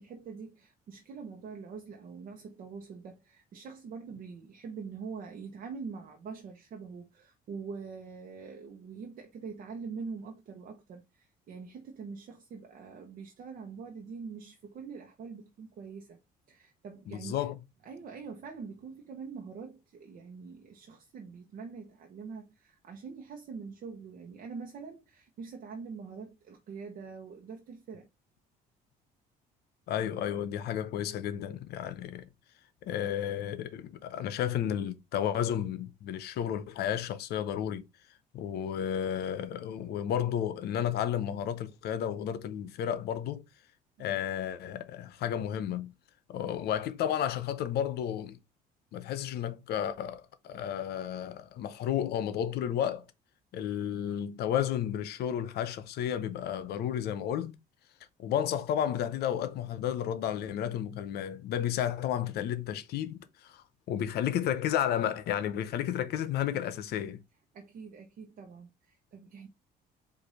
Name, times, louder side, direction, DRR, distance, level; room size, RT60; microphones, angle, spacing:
voice 1, 0.0-16.2 16.5-17.5 17.8-28.1 44.0-44.2 67.5-69.5, right 5 dB, 55° right, 0.9 m, -44 dB
voice 2, 17.1-17.6 29.9-32.3 32.8-37.8 38.3-43.4 44.0-45.9 46.3-48.4 48.9-53.0 53.5-57.6 58.2-67.2, left 10 dB, 70° left, 0.7 m, -32 dB
4.9 x 2.6 x 4.0 m
cardioid pair, 110°, 17 cm